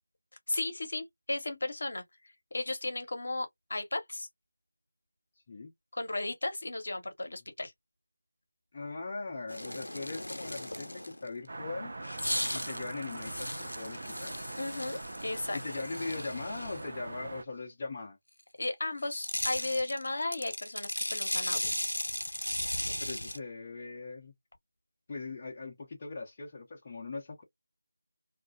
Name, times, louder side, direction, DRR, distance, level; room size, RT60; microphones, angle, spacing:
voice 1, 0.5-2.0 2.5-4.3 5.9-7.7 14.6-15.8 18.6-21.7, left 2 dB, 60° left, 0.8 m, -35 dB
voice 2, 8.7-10.9 11.2-11.9 12.5-14.4 15.5-18.2 22.8-24.3 25.1-27.4, left 3 dB, 30° left, 0.6 m, -40 dB
sound 1, 9.5-11.3 12.0-16.9 19.0-23.4, left 1 dB, 90° left, 0.5 m, -36 dB
sound 2, 11.5-17.4, right 2 dB, 50° right, 0.5 m, -42 dB
2.4 x 2.1 x 2.5 m
figure-of-eight pair, 165°, 0 cm